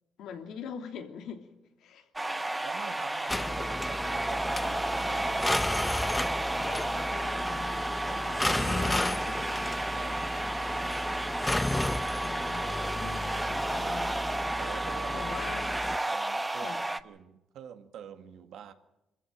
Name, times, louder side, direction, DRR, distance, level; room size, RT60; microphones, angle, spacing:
voice 1, 0.2-1.5 1.8-2.1 4.3-4.8 6.5-9.8 12.2-14.2 15.1-15.6 16.6-16.8, left 7 dB, 80° left, 2.9 m, -43 dB
sound 1, 2.2-17.0, right 2 dB, 15° right, 1.0 m, -32 dB
voice 2, 2.6-6.3 10.0-10.3 14.6-15.2 15.9-16.7 17.0-18.7, right 9 dB, 80° right, 1.8 m, -47 dB
sound 2, 3.3-16.0, left 1 dB, 15° left, 0.7 m, -33 dB
24.5 x 15.0 x 9.0 m
cardioid pair, 90°, 0 cm